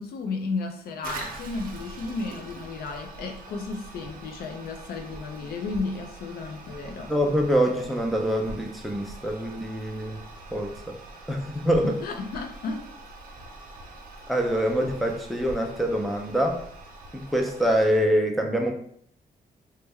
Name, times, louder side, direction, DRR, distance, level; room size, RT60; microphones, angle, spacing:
voice 1, 0.0-7.1 11.8-12.8, left 3 dB, 90° left, 4 dB, 0.5 m, -33 dB
Toilet flush, 1.0-18.0, right 2 dB, 70° right, 0.6 m, -43 dB
voice 2, 7.1-10.2 10.5-10.9 11.3-12.0 14.3-16.6 17.1-18.7, equal, ahead, 1 dB, 0.5 m, -25 dB
3.2 x 2.1 x 3.4 m, 0.65 s
cardioid pair, 120°, 15 cm